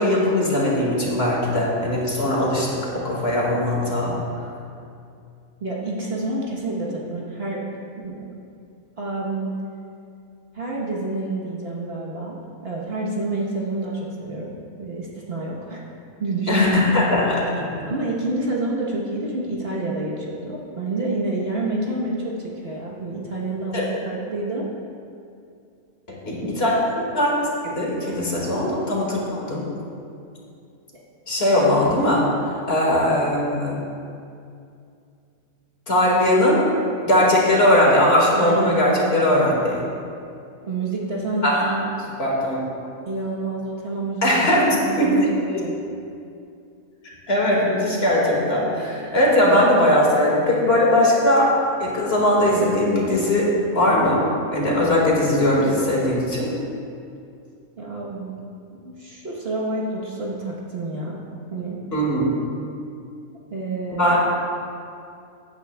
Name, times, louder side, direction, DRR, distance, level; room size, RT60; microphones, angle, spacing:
voice 1, 0.0-2.7 2.9-4.2 16.5-17.7 23.7-23.9 26.1-26.7 27.1-27.3 27.6-29.6 31.3-32.3 32.7-33.7 35.9-36.6 37.0-39.8 41.4-41.7 42.2-42.6 44.2-44.7 45.0-45.1 47.3-54.2 54.5-56.5 61.9-62.2 64.0-64.3, left 1 dB, 45° left, -4 dB, 2.1 m, -19 dB
voice 2, 5.6-7.6 8.0-8.2 9.0-9.5 10.5-12.4 12.6-14.5 14.8-15.9 16.2-16.8 17.8-24.7 26.5-26.6 31.5-31.8 38.3-39.5 40.6-41.9 43.0-45.8 57.8-58.3 58.7-61.2 61.5-61.8 63.5-64.1, right 2 dB, 45° right, -3 dB, 1.3 m, -28 dB
15.5 x 9.4 x 2.3 m, 2.5 s
omnidirectional pair, 1.5 m